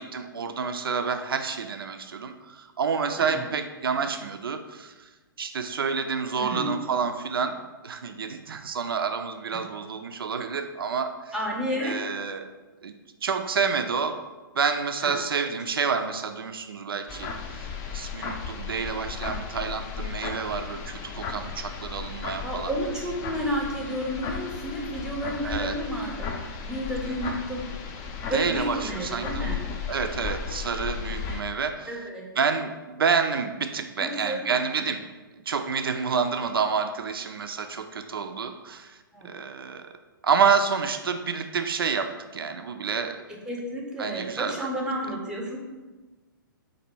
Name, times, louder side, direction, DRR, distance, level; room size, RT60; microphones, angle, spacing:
voice 1, 0.0-5.1 5.4-11.3 11.8-12.5 12.8-12.9 13.2-14.2 14.5-17.7 17.9-22.7 25.4-25.8 27.0-27.4 28.3-29.5 29.9-32.0 32.4-35.0 35.5-39.0 39.2-39.9 40.2-43.2 44.0-44.7, right 6 dB, 85° right, 7 dB, 0.4 m, -28 dB
voice 2, 6.4-6.7 9.5-9.6 11.3-12.0 15.0-15.2 22.2-26.3 26.6-27.6 28.3-29.6 31.9-32.3 34.0-34.4 34.8-34.9 39.1-39.3 43.5-45.6, equal, 5° right, -2 dB, 0.7 m, -31 dB
sound 1, 17.1-31.4, left 6 dB, 30° left, 0.4 m, -35 dB
4.1 x 2.6 x 4.4 m, 1.2 s
hypercardioid pair, 125°, 12 cm